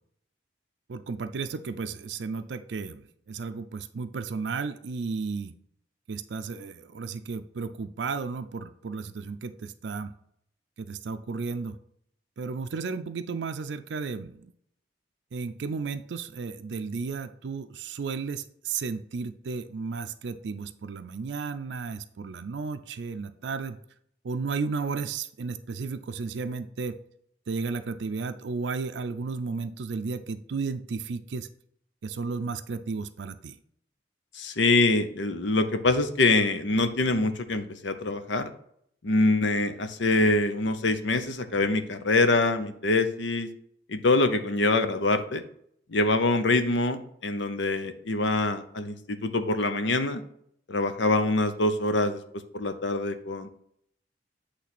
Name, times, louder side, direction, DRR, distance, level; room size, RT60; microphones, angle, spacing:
voice 1, 0.9-5.5 6.1-10.1 10.8-11.8 12.4-14.5 15.3-23.8 24.2-27.0 27.5-31.5 32.0-33.6, right 4 dB, 70° right, 9 dB, 0.4 m, -33 dB
voice 2, 34.3-38.5 39.0-43.5 43.9-45.4 45.9-50.2 50.7-52.2 52.5-53.5, left 2 dB, 75° left, 9 dB, 0.8 m, -24 dB
8.4 x 3.3 x 5.9 m, 0.68 s
head